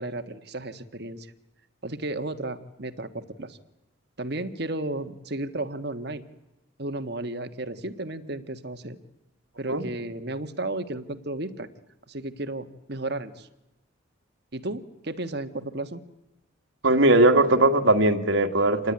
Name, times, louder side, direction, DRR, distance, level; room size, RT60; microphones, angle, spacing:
voice 1, 0.0-1.3 1.8-3.6 4.2-6.2 6.8-9.0 9.6-11.7 12.1-13.5 14.5-16.0, right 2 dB, 55° right, 8 dB, 1.6 m, -33 dB
voice 2, 16.8-18.9, right 2 dB, 75° right, 4 dB, 1.9 m, -19 dB
27.0 x 19.5 x 9.7 m, 0.95 s
head